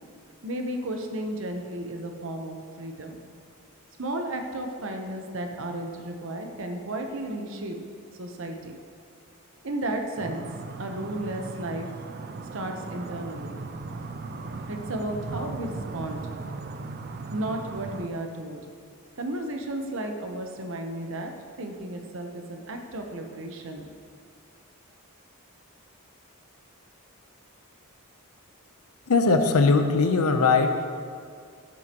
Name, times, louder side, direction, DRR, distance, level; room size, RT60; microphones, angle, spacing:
voice 1, 0.4-3.2 4.0-7.8 8.2-8.8 9.6-10.4 10.8-11.9 12.5-13.6 14.7-16.2 17.3-18.6 19.2-21.3 21.6-23.9, right 1 dB, 60° right, 3 dB, 0.9 m, -33 dB
sound 1, 10.2-18.1, right 3 dB, 45° right, 0.4 m, -37 dB
voice 2, 29.1-30.9, left 4 dB, 85° left, 6 dB, 0.7 m, -20 dB
13.5 x 7.6 x 3.0 m, 2.2 s
head